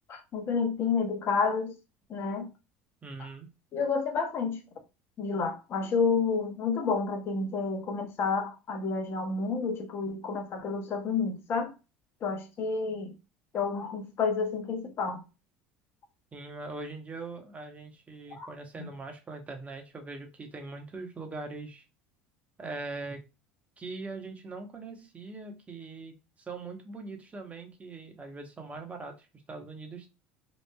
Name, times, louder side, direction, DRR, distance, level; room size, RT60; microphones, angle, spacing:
voice 1, 0.1-1.7 2.1-2.5 3.7-4.6 5.2-11.7 12.2-13.1 13.5-15.2 18.3-18.5 18.8-18.9, left 5 dB, 45° left, 0.7 m, -30 dB
voice 2, 3.0-3.5 16.3-21.8 22.6-23.2 23.8-30.1, right 3 dB, 25° right, 0.8 m, -41 dB
3.0 x 2.2 x 2.2 m
hypercardioid pair, 80°, 6 cm